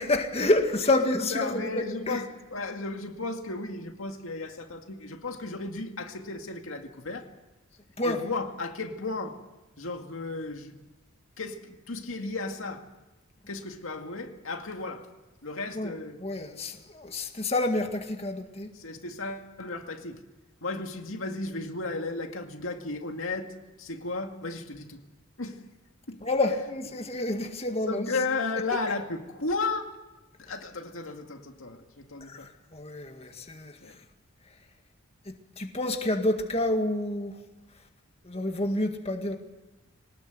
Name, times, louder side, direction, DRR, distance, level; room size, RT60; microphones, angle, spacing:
voice 1, 0.0-2.2 8.0-8.2 15.8-15.9 16.2-18.7 26.2-28.1 32.3-33.8 35.3-37.4 38.2-39.4, left 2 dB, 30° left, 2.0 m, -28 dB
voice 2, 1.3-7.3 8.0-9.4 9.8-10.8 11.4-12.9 13.5-15.1 15.4-16.2 18.7-20.2 20.6-25.0 25.4-25.7 26.1-26.2 27.9-29.9 30.4-32.5 33.8-34.0, left 3 dB, 85° left, 2.2 m, -34 dB
22.5 x 19.5 x 8.0 m
head